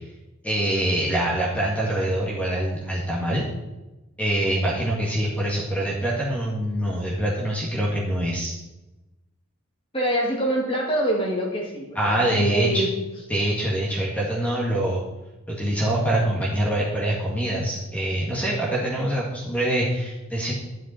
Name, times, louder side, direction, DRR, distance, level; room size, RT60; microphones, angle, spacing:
voice 1, 0.4-3.4 4.2-8.5 11.9-12.9 13.3-15.0 15.5-20.5, right 1 dB, 5° left, -5 dB, 1.7 m, -24 dB
voice 2, 9.9-12.9, right 1 dB, 25° left, -1 dB, 2.3 m, -25 dB
12.5 x 7.7 x 4.3 m, 1.0 s
head